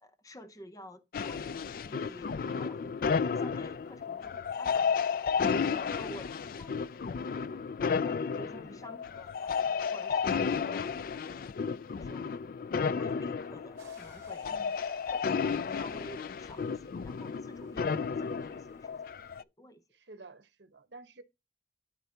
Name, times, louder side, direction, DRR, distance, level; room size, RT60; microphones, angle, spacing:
voice 1, 0.0-2.9 3.4-4.8 5.5-7.7 8.0-9.7 9.9-11.0 12.0-12.3 13.0-14.5 14.9-19.0 19.2-19.8, equal, 20° left, 0.7 m, -51 dB
sound 1, 1.1-19.4, left 6 dB, 50° left, 0.3 m, -33 dB
sound 2, 13.8-19.4, right 2 dB, 15° right, 3.5 m, -63 dB
voice 2, 19.9-21.2, right 3 dB, 75° right, 1.1 m, -51 dB
12.5 x 4.5 x 2.8 m
head